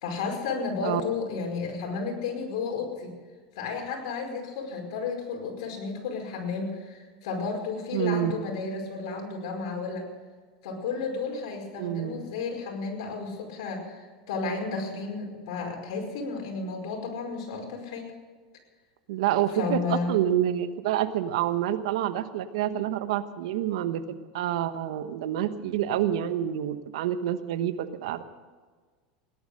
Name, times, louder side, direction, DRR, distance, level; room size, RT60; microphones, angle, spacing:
voice 1, 0.0-3.1 3.6-10.1 10.6-18.1 19.5-20.2, left 4 dB, 70° left, 1 dB, 5.1 m, -32 dB
voice 2, 7.9-8.5 11.8-12.3 19.1-28.2, right 11 dB, 75° right, 11 dB, 1.1 m, -28 dB
18.0 x 11.0 x 6.6 m, 1.5 s
supercardioid pair, 110°, 3 cm